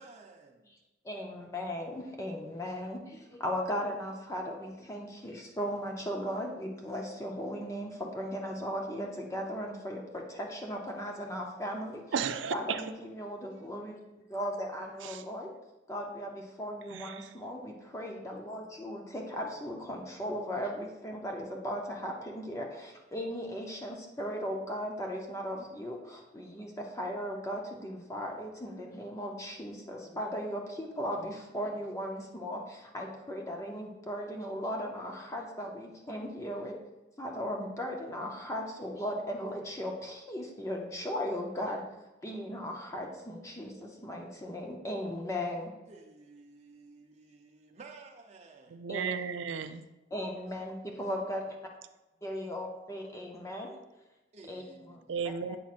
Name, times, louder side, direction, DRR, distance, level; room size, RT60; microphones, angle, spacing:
voice 1, 0.0-0.5 45.9-48.8 54.3-55.6, right 3 dB, 35° right, 0 dB, 0.6 m, -53 dB
voice 2, 1.1-12.0 12.5-14.0 14.3-15.5 15.9-36.7 37.2-41.8 42.2-45.7 48.9-49.1 50.1-51.5 52.2-53.8 54.5-54.6 54.9-55.0 55.5-55.6, equal, 15° left, 1 dB, 0.6 m, -37 dB
voice 3, 12.1-12.8 15.0-15.2 16.9-17.3 48.7-49.9 55.1-55.6, right 6 dB, 85° right, 10 dB, 0.4 m, -34 dB
8.3 x 5.9 x 2.5 m, 1.0 s
head